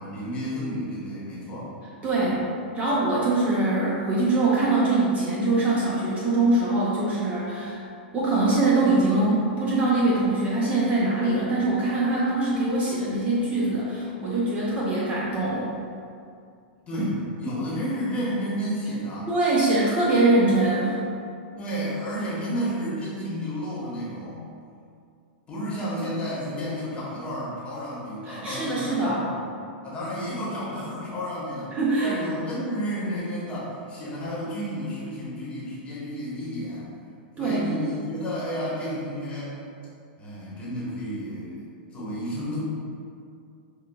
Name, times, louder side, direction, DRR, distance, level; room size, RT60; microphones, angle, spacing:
voice 1, 0.0-1.7 2.1-2.5 16.9-19.3 21.6-24.5 25.5-29.4 29.8-31.7 32.0-36.9 37.4-39.6 40.2-42.6, equal, 20° left, -7 dB, 1.1 m, -31 dB
voice 2, 2.0-2.4 2.7-7.8 8.1-15.7 19.3-21.0 28.3-29.2 31.7-32.1 37.4-37.8, right 2 dB, 25° right, -6 dB, 0.7 m, -23 dB
5.4 x 2.2 x 2.3 m, 2.4 s
hypercardioid pair, 125°, 5 cm